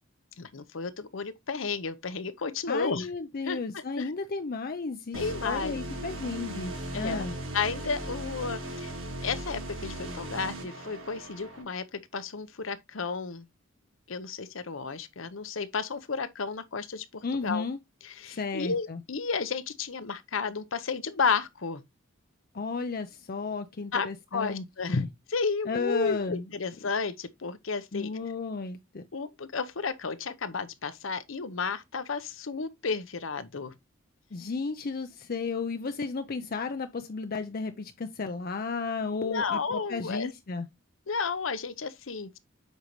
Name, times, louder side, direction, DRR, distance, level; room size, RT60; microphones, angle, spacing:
voice 1, 0.4-3.1 3.4-3.6 4.0-4.1 5.1-5.7 6.9-7.2 7.5-8.9 9.2-13.5 14.1-17.6 18.0-21.8 23.9-28.1 29.1-33.7 39.2-40.3 41.1-42.4, left 5 dB, 75° left, 0.8 m, -32 dB
voice 2, 2.7-7.3 17.2-17.8 18.2-19.0 22.5-24.6 24.9-25.1 25.7-26.5 27.9-29.0 34.3-40.7, left 4 dB, 50° left, 0.6 m, -33 dB
sound 1, 5.1-11.6, right 1 dB, 90° right, 3.2 m, -38 dB
8.1 x 5.3 x 3.0 m
head